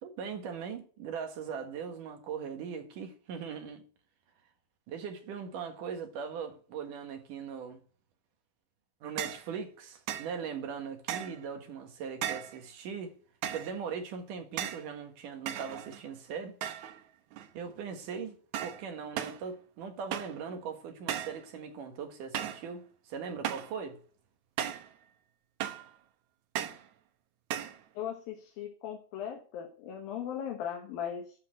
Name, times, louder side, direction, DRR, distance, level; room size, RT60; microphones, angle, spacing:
voice 1, 0.0-3.8 4.9-7.8 9.0-13.2 13.5-16.6 17.5-24.0, right 6 dB, 60° right, 3.0 m, -40 dB
sound 1, 9.2-9.5 10.1-10.3 11.1-11.4 12.2-12.6 13.4-13.8 14.6-14.9 15.5-16.1 16.6-17.0 17.3-17.8 18.5-18.8 19.2-19.4 20.1-20.4 21.1-21.4 22.3-22.7 23.4-23.8 24.6-24.9 25.6-25.9 26.5-26.9 27.5-27.8, right 10 dB, 75° right, 1.7 m, -36 dB
voice 2, 27.9-31.3, left 9 dB, 70° left, 3.1 m, -38 dB
12.0 x 4.5 x 7.6 m
omnidirectional pair, 4.4 m